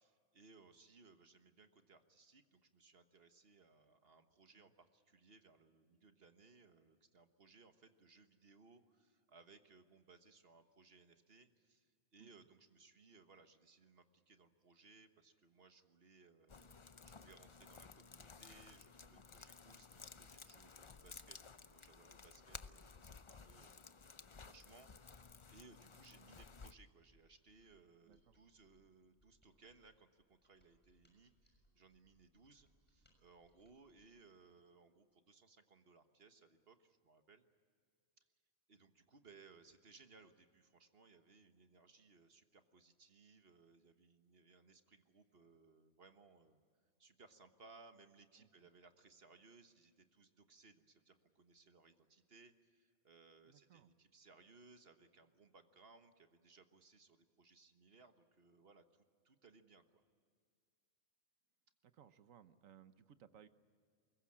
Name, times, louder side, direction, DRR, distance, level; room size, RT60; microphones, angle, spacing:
voice 1, 0.0-37.4 38.2-38.3 38.7-46.6 47.0-60.0, right 4 dB, 45° right, 8 dB, 1.5 m, -65 dB
sound 1, 16.5-26.7, left 5 dB, 40° left, 0.4 m, -56 dB
Mechanisms, 27.1-34.2, right 1 dB, 5° left, 6.3 m, -77 dB
voice 2, 28.1-28.4 48.4-48.5 53.4-53.9 61.8-63.5, right 9 dB, 70° right, 12 dB, 1.3 m, -63 dB
24.0 x 22.0 x 8.7 m, 2.1 s
omnidirectional pair, 1.4 m